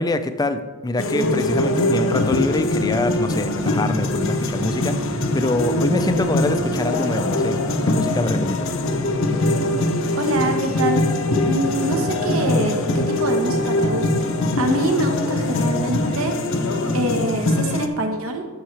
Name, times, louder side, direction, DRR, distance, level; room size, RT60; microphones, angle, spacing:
voice 1, 0.0-7.6 7.9-8.7, left 2 dB, 15° left, 10 dB, 0.4 m, -25 dB
sound 1, 1.0-17.9, left 2 dB, 60° left, 0.6 m, -22 dB
sound 2, 2.1-17.2, right 1 dB, 25° right, 0.8 m, -32 dB
voice 2, 10.1-11.1 11.5-16.4 16.9-18.4, right 1 dB, 70° right, 4 dB, 1.1 m, -25 dB
13.0 x 6.5 x 3.3 m, 1.4 s
head